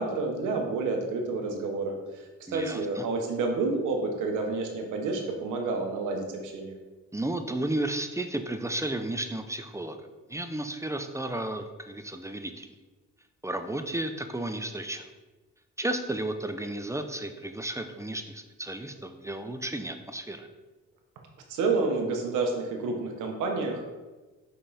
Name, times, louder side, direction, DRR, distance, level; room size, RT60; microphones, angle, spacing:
voice 1, 0.0-6.8 21.5-24.0, right 3 dB, 90° right, 3 dB, 1.2 m, -29 dB
voice 2, 2.5-3.0 7.1-12.7 13.4-15.1 15.8-20.5, right 1 dB, 10° right, 7 dB, 0.5 m, -33 dB
5.4 x 5.4 x 4.1 m, 1.2 s
cardioid pair, 90°, 30 cm